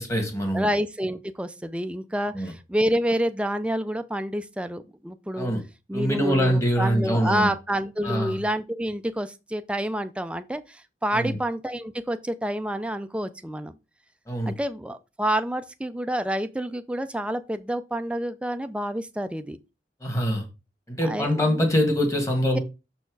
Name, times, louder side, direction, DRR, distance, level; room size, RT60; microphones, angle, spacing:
voice 1, 0.0-0.7 2.3-2.5 5.3-5.6 5.9-7.5 8.0-8.4 11.1-11.4 14.3-14.5 20.0-20.5 20.9-22.6, equal, 15° left, 1.7 m, -24 dB
voice 2, 0.5-5.5 5.9-13.7 14.5-19.6 21.0-21.7 22.5-22.6, equal, 5° right, 0.4 m, -28 dB
6.7 x 4.4 x 4.7 m
head